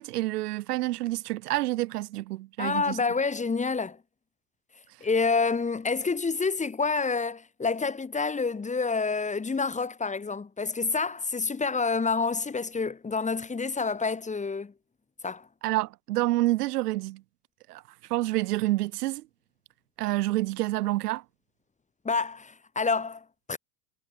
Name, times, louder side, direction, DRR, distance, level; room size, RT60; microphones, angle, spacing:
voice 1, 0.0-3.0 15.6-17.2 17.7-17.8 18.1-19.3 20.0-21.2, right 17 dB, 75° right, 1.4 m, -28 dB
voice 2, 2.6-4.0 5.0-14.7 15.2-15.5 22.0-23.6, left 4 dB, 15° left, 5.0 m, -28 dB
hypercardioid pair, 105°, 47 cm